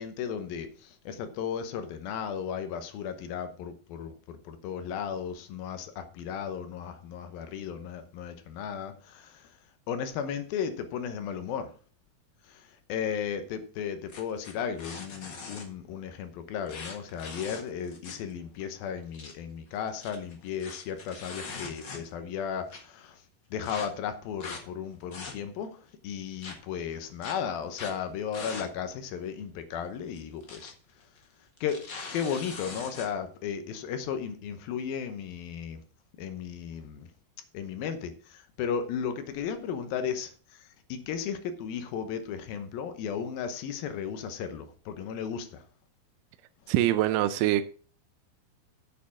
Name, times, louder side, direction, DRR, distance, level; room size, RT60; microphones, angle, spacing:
voice 1, 0.0-9.6 9.9-11.7 12.4-23.2 23.5-30.7 31.6-31.9 32.1-35.8 36.2-37.1 37.5-45.6, left 7 dB, 80° left, 2.7 m, -35 dB
sound 1, 14.1-15.7 16.7-18.3 18.6-18.7 19.0-19.3 19.9-22.3 22.7-22.8 23.6-23.9 24.4-24.6 25.0-25.7 26.4-26.5 27.2-27.3 27.7-28.0 28.3-28.7 29.0-29.1 30.2-30.7 31.0-31.2 31.6-33.1, left 4 dB, 45° left, 1.5 m, -41 dB
voice 2, 46.7-47.6, right 13 dB, 80° right, 1.9 m, -24 dB
8.4 x 7.6 x 5.8 m
omnidirectional pair, 4.3 m